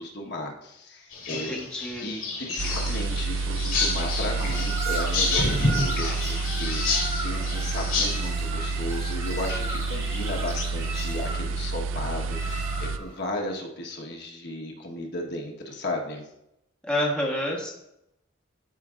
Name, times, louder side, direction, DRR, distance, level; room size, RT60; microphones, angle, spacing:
voice 1, 0.0-1.5 2.0-16.3, left 1 dB, 55° left, 0 dB, 1.3 m, -35 dB
sound 1, 1.1-8.3, left 3 dB, 85° left, 2.5 m, -29 dB
voice 2, 1.3-2.1 16.8-17.7, left 1 dB, 5° left, -3 dB, 1.1 m, -28 dB
sound 2, 2.6-13.0, right 4 dB, 65° right, 0.4 m, -29 dB
sound 3, 4.0-13.2, right 2 dB, 15° right, 1.3 m, -36 dB
13.0 x 5.1 x 2.5 m, 0.83 s
head